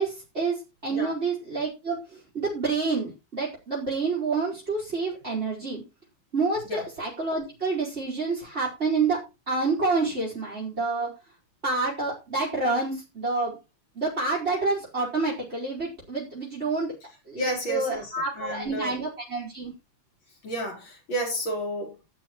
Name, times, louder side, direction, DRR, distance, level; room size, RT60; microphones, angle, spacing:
voice 1, 0.0-5.8 6.3-11.1 11.6-13.6 13.9-16.9 17.3-19.7, right 3 dB, 30° right, 5.5 m, -28 dB
voice 2, 17.4-19.0 20.4-22.0, right 1 dB, 80° left, 5.2 m, -31 dB
14.0 x 11.5 x 3.2 m
omnidirectional pair, 2.1 m